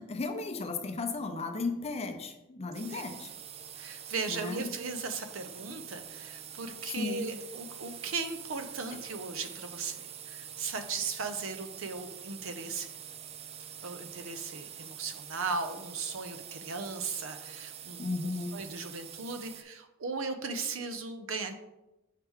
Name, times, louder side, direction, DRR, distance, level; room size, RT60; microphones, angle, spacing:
voice 1, 0.0-3.3 4.3-4.7 7.0-7.3 18.0-18.6, left 3 dB, 30° left, 6 dB, 0.6 m, -35 dB
sound 1, 2.7-19.6, right 9 dB, 30° right, 0.3 m, -46 dB
voice 2, 3.8-12.9 13.8-18.1 18.5-21.5, right 4 dB, 70° right, 8 dB, 0.6 m, -37 dB
5.7 x 4.6 x 3.6 m, 0.96 s
head